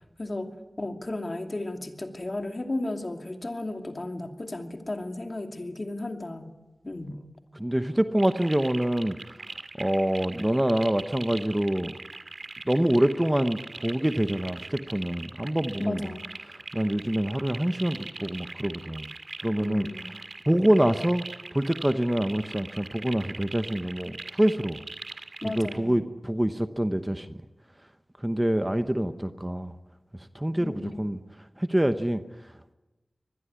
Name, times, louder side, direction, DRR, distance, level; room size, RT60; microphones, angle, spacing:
voice 1, 0.2-0.5 0.8-6.5 6.8-7.2 15.8-16.3 19.6-20.1 25.4-26.0 30.6-31.0, left 2 dB, 40° left, 5 dB, 2.6 m, -34 dB
voice 2, 7.6-9.2 9.8-11.9 12.7-16.0 16.7-19.1 19.4-19.9 20.5-21.3 21.5-24.8 25.4-27.3 28.2-29.7 30.3-31.2 31.6-32.2, right 1 dB, 15° right, 10 dB, 0.9 m, -26 dB
sound 1, 8.2-25.8, right 3 dB, 65° right, 2.1 m, -41 dB
24.5 x 20.5 x 9.7 m, 1.1 s
wide cardioid pair, 80°, 0 cm